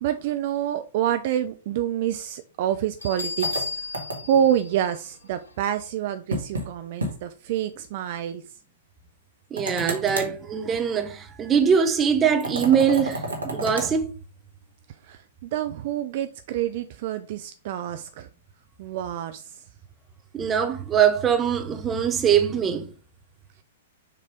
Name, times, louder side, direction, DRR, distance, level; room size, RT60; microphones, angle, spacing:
voice 1, 0.0-3.7 3.9-8.4 15.0-18.3 18.8-19.6, right 10 dB, 50° right, 0.5 m, -27 dB
Bell, 3.0-5.7, left 4 dB, 75° left, 2.0 m, -34 dB
sound 1, 3.4-4.5 6.3-6.7 7.0-7.1 7.5-7.6 9.6-10.4 12.4-13.9, right 1 dB, 80° right, 1.8 m, -31 dB
voice 2, 9.5-14.1 20.3-22.9, right 7 dB, 20° right, 1.0 m, -22 dB
6.7 x 3.3 x 5.0 m
figure-of-eight pair, 110°, 0 cm